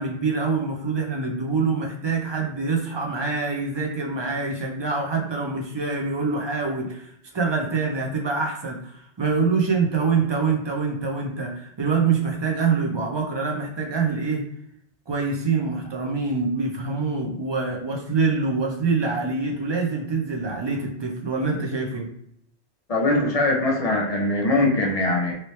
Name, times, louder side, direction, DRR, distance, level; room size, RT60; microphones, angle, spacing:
voice 1, 0.0-7.0 7.3-14.4 15.1-22.1, right 4 dB, 35° right, 1 dB, 0.4 m, -25 dB
voice 2, 22.9-25.4, left 2 dB, 40° left, 0 dB, 0.6 m, -22 dB
3.1 x 2.9 x 3.1 m, 0.71 s
omnidirectional pair, 1.2 m